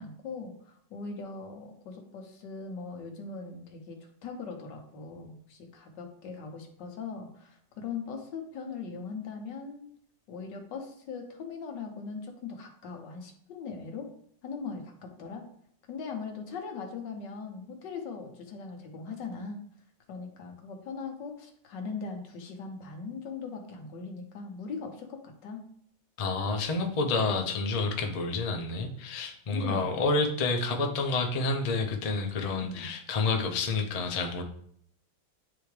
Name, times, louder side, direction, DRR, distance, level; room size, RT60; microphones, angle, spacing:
voice 1, 0.0-9.9 10.3-14.1 14.4-15.5 15.9-19.6 20.1-25.6 29.5-29.9 32.6-32.9, left 5 dB, 75° left, 3 dB, 1.6 m, -40 dB
voice 2, 26.2-34.4, left 3 dB, 60° left, 2 dB, 0.4 m, -29 dB
9.0 x 3.4 x 3.3 m, 0.66 s
omnidirectional pair, 1.9 m